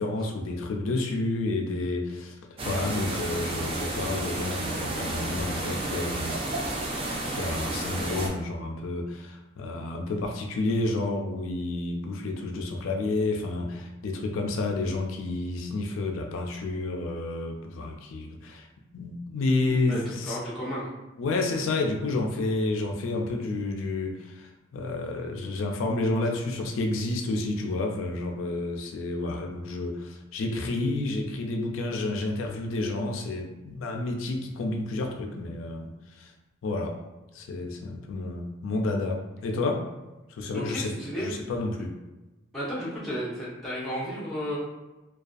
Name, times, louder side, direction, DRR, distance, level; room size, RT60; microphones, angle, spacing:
voice 1, 0.0-2.4 2.7-6.4 7.2-18.7 18.9-20.4 21.2-36.3 36.6-37.0 37.3-39.9 40.3-41.0 41.2-42.0, left 2 dB, 85° left, 3 dB, 0.3 m, -30 dB
sound 1, 2.6-8.3, right 2 dB, 25° right, 0.3 m, -31 dB
voice 2, 19.9-20.8 40.5-41.3 42.5-44.6, equal, ahead, -9 dB, 0.7 m, -33 dB
2.4 x 2.2 x 2.3 m, 1.1 s
head